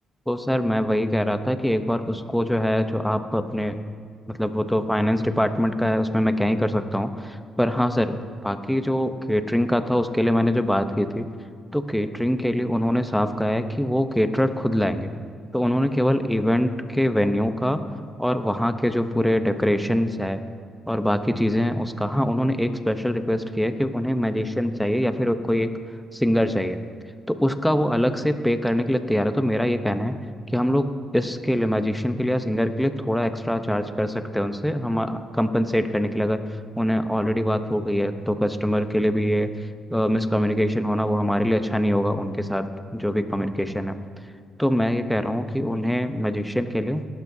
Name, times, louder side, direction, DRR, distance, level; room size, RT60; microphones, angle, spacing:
voice 1, 0.3-3.8 4.3-8.2 8.4-11.2 11.7-15.1 15.5-17.8 18.2-20.4 20.9-25.7 26.1-26.8 27.3-30.2 30.5-30.9 31.1-36.4 36.8-39.5 39.9-42.6 42.9-44.0 44.6-47.1, equal, ahead, 8 dB, 0.8 m, -23 dB
19.5 x 12.0 x 2.8 m, 2.2 s
cardioid pair, 90°, 0 cm